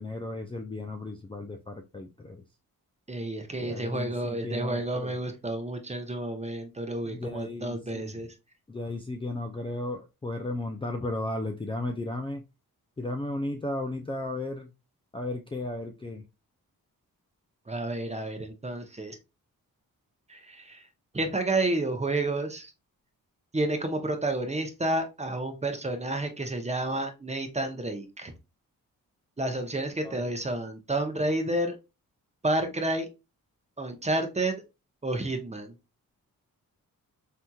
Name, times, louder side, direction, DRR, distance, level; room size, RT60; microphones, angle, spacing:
voice 1, 0.0-2.4 3.6-5.2 7.0-8.1 8.7-12.4 13.0-14.7 15.1-16.2 30.0-30.3, left 2 dB, 15° left, 0.4 m, -35 dB
voice 2, 3.1-8.3 17.7-19.2 20.3-20.8 21.1-22.7 23.5-28.3 29.4-31.7 32.4-33.1 33.8-34.6 35.0-35.7, right 2 dB, 20° right, 0.8 m, -30 dB
3.4 x 2.9 x 2.3 m
cardioid pair, 60°, 36 cm